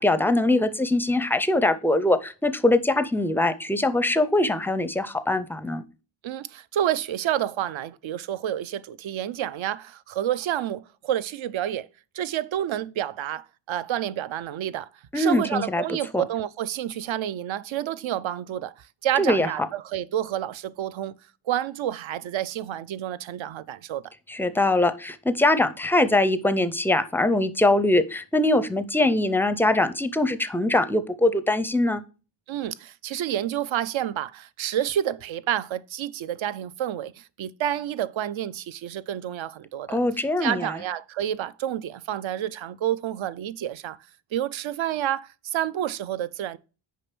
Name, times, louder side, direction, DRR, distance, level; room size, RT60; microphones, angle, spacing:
voice 1, 0.0-5.8 15.1-16.2 19.2-19.5 24.3-32.0 39.9-40.8, left 2 dB, 5° left, 0.4 m, -22 dB
voice 2, 6.2-11.9 12.1-21.2 21.5-24.1 32.5-40.0 40.4-44.0 44.3-46.6, right 11 dB, 65° right, 0.6 m, -29 dB
6.6 x 5.1 x 6.0 m
wide cardioid pair, 125°, 50 cm